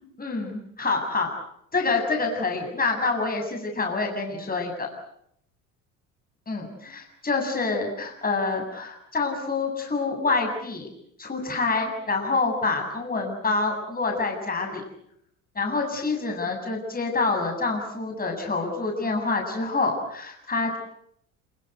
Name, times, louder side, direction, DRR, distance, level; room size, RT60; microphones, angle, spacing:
voice 1, 0.2-1.3 1.7-4.9 6.5-10.9 11.2-14.8 15.5-20.8, left 3 dB, 20° left, 2 dB, 7.8 m, -27 dB
29.0 x 22.0 x 8.1 m, 0.73 s
figure-of-eight pair, 65°, 41 cm